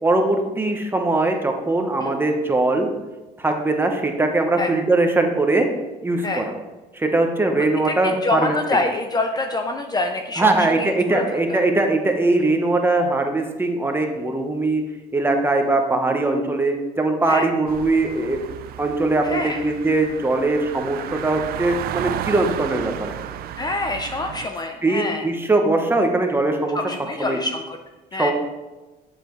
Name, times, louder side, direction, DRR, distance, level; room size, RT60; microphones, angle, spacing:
voice 1, 0.0-2.9 3.4-5.7 6.0-6.4 6.9-8.5 10.4-14.8 15.1-18.4 18.8-23.1 24.8-26.8 27.2-27.4 28.2-28.3, right 2 dB, 15° right, 3 dB, 1.0 m, -21 dB
voice 2, 7.6-11.6 17.3-17.5 19.2-19.6 23.6-25.3 26.7-27.8 28.1-28.3, left 2 dB, 25° left, 5 dB, 0.5 m, -26 dB
sound 1, 17.7-24.5, right 11 dB, 65° right, 0.4 m, -33 dB
7.7 x 6.7 x 3.1 m, 1.2 s
cardioid pair, 110°, 17 cm